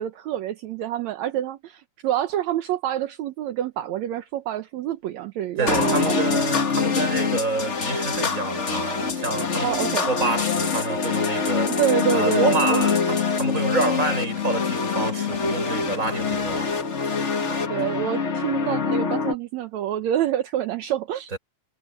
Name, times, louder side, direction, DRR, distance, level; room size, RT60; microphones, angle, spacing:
voice 1, 0.0-6.5 9.6-10.2 11.8-12.9 17.7-21.3, right 11 dB, 75° right, 2.2 m, -27 dB
voice 2, 5.6-11.7 12.1-17.6 21.3-21.4, right 3 dB, 25° right, 5.9 m, -28 dB
sound 1, 5.7-19.3, left 5 dB, 35° left, 1.1 m, -24 dB
omnidirectional pair, 3.3 m